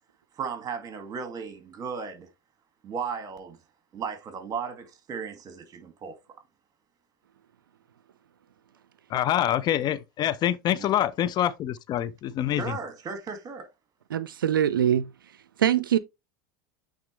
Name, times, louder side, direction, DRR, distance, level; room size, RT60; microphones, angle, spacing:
voice 1, 0.4-2.3 2.8-3.6 3.9-6.2 10.8-10.9 12.5-13.7, right 6 dB, 35° right, 2.1 m, -35 dB
voice 2, 9.1-12.6, left 11 dB, 40° left, 0.6 m, -26 dB
voice 3, 14.1-15.1 15.6-16.0, right 10 dB, 85° right, 0.4 m, -23 dB
8.8 x 3.7 x 3.2 m
hypercardioid pair, 85°, 11 cm